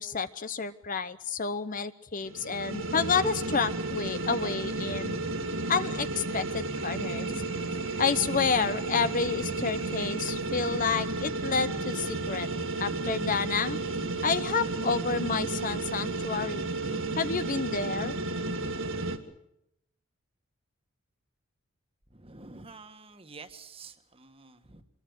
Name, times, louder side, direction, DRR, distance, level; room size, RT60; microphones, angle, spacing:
voice 1, 0.0-5.2 5.7-7.3 8.0-12.5 12.8-13.8 14.2-16.7 17.2-18.2, left 5 dB, 40° left, 12 dB, 0.8 m, -29 dB
sound 1, 2.2-19.2, right 2 dB, 65° right, 2.3 m, -32 dB
voice 2, 22.1-24.8, right 4 dB, 25° right, 8 dB, 1.8 m, -48 dB
25.0 x 21.5 x 6.5 m, 0.79 s
head